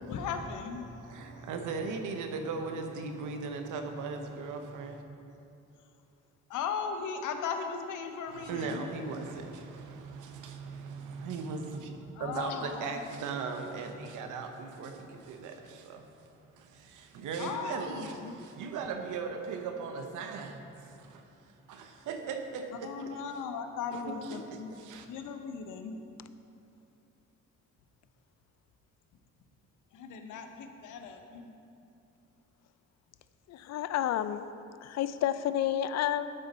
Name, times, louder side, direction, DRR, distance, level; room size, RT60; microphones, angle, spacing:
voice 1, 0.0-0.9 6.5-8.9 12.1-13.1 17.4-18.4 22.8-26.0 29.9-31.5, left 6 dB, 80° left, 6 dB, 0.8 m, -37 dB
voice 2, 1.0-5.0 8.3-16.3 16.5-23.2 23.9-25.1, right 4 dB, 85° right, 5 dB, 0.9 m, -38 dB
voice 3, 33.5-34.5 34.8-36.3, left 11 dB, 60° left, 13 dB, 0.4 m, -30 dB
12.5 x 5.4 x 4.0 m, 2.7 s
cardioid pair, 90°, 30 cm